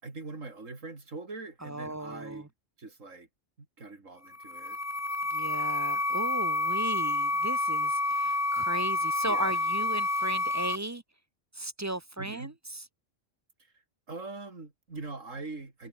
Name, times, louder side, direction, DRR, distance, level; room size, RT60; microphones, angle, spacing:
voice 1, 0.0-2.5 2.8-3.3 3.6-4.8 9.2-9.6 12.2-12.5 13.6-15.9, right 3 dB, 90° right, 3.8 m, -43 dB
voice 2, 1.6-2.5 5.3-11.0 11.5-12.8, right 2 dB, 20° right, 0.5 m, -36 dB
sound 1, 4.3-10.8, left 2 dB, 15° left, 0.7 m, -29 dB
omnidirectional pair, 1.3 m